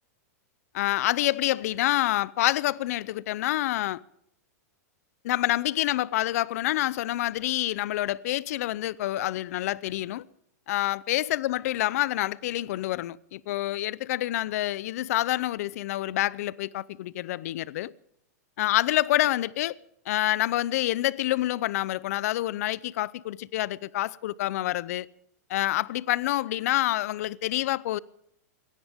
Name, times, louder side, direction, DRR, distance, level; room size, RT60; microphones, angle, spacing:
voice 1, 0.7-4.0 5.2-10.2 10.7-17.9 18.6-19.8 20.1-25.1 25.5-28.0, left 15 dB, 65° left, 0.6 m, -27 dB
21.0 x 17.5 x 3.6 m
hypercardioid pair, 130°, 9 cm